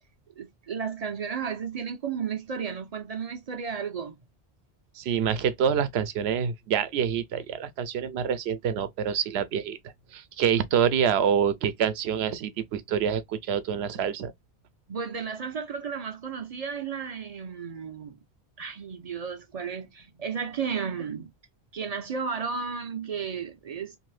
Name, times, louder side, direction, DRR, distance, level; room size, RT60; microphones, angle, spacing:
voice 1, 0.4-4.2 14.9-18.2 18.6-21.3 21.7-24.0, right 6 dB, 45° right, 0.5 m, -33 dB
voice 2, 4.9-14.3, right 8 dB, 80° right, 0.8 m, -26 dB
2.7 x 2.6 x 3.2 m
omnidirectional pair, 1.1 m